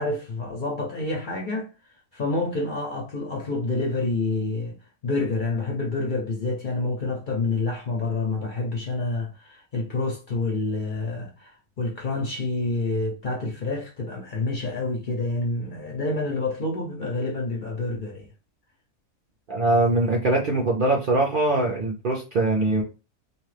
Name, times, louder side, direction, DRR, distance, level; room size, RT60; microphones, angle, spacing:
voice 1, 0.0-1.7 2.1-4.8 5.0-18.3, left 3 dB, 55° left, 0.6 m, -28 dB
voice 2, 19.5-22.8, right 2 dB, 60° right, 0.5 m, -22 dB
2.8 x 2.3 x 3.2 m
omnidirectional pair, 1.4 m